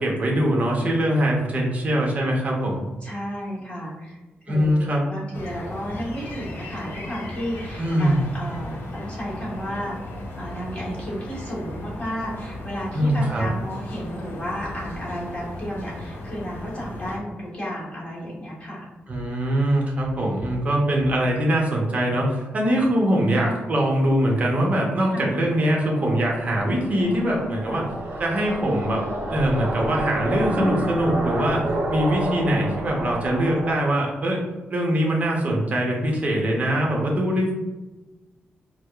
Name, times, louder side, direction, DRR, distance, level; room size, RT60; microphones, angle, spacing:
voice 1, 0.0-2.8 4.5-5.0 7.8-8.3 12.9-13.5 19.1-27.8 28.2-29.0 29.3-31.6 31.9-34.4 34.7-37.5, right 1 dB, 35° right, -2 dB, 0.8 m, -22 dB
voice 2, 3.0-4.2 4.5-10.0 10.3-18.9 23.4-23.7 25.1-25.2 27.7-27.9, equal, 25° left, -6 dB, 1.3 m, -33 dB
sound 1, 5.3-17.2, left 1 dB, 60° left, 0.6 m, -36 dB
sound 2, 25.5-33.8, right 1 dB, 65° right, 0.7 m, -30 dB
4.6 x 2.0 x 2.3 m, 1.1 s
wide cardioid pair, 135°, 4 cm